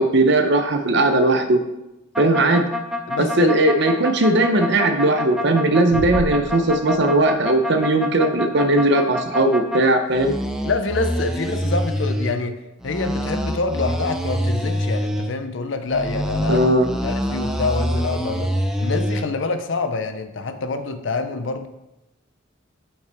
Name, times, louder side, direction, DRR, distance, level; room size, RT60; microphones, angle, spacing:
voice 1, 0.0-1.6 2.2-2.7 3.2-10.3 16.5-16.9, right 2 dB, 55° right, 7 dB, 0.7 m, -18 dB
sound 1, 2.1-9.8 10.1-12.3 12.8-15.3 15.9-19.3, equal, 5° right, 0.4 m, -25 dB
voice 2, 3.1-3.5 10.6-16.6 17.0-18.5 18.8-21.7, left 3 dB, 65° left, 9 dB, 0.6 m, -26 dB
sound 2, 5.9-7.6, equal, 30° left, 2.4 m, -32 dB
6.7 x 5.6 x 3.5 m, 0.93 s
head